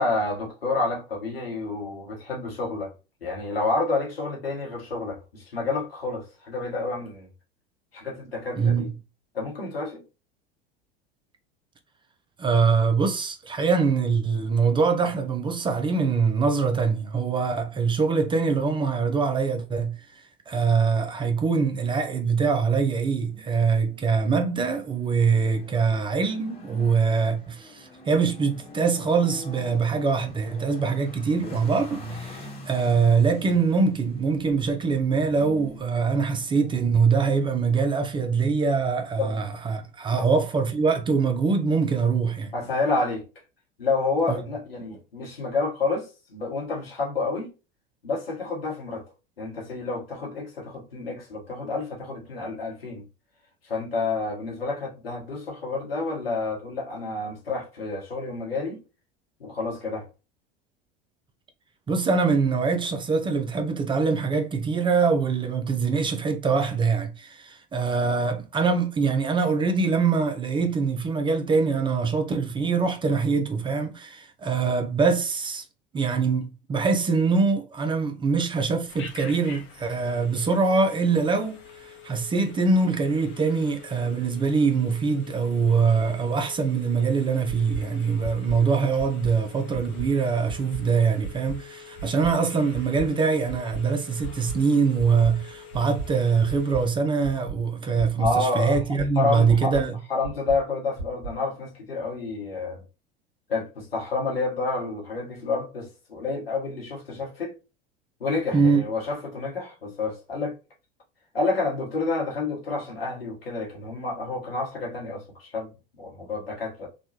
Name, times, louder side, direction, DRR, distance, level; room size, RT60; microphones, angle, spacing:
voice 1, 0.0-2.9 3.2-7.3 7.9-8.9 9.3-10.0 39.2-39.4 40.1-40.3 42.5-43.2 43.8-47.5 48.0-49.0 49.4-53.0 53.6-58.8 59.4-60.1 98.2-98.8 99.1-99.7 100.1-102.8 103.5-107.6 108.2-110.5 111.3-116.9, left 3 dB, 90° left, 1.1 m, -29 dB
voice 2, 8.6-8.9 12.4-42.5 44.3-44.4 61.9-75.6 75.9-99.9 108.5-108.8, right 5 dB, 15° right, 0.4 m, -23 dB
sound 1, 23.0-39.6, left 1 dB, 20° left, 1.2 m, -44 dB
Telephone, 78.9-97.0, left 7 dB, 40° left, 0.7 m, -47 dB
sound 2, 87.5-87.8 88.2-88.6 89.0-89.3 89.7-90.1 90.5-90.8 91.2-91.6 92.0-92.3 92.7-93.1 93.5-93.8 94.2-94.6 95.0-95.3 95.7-96.1 96.5-96.8 97.2-97.6 98.0-98.3 98.7-99.1 99.5-99.8 100.2-100.6 101.0-101.3, right 4 dB, 60° right, 0.7 m, -34 dB
3.0 x 2.2 x 2.7 m
hypercardioid pair, 80°, 29 cm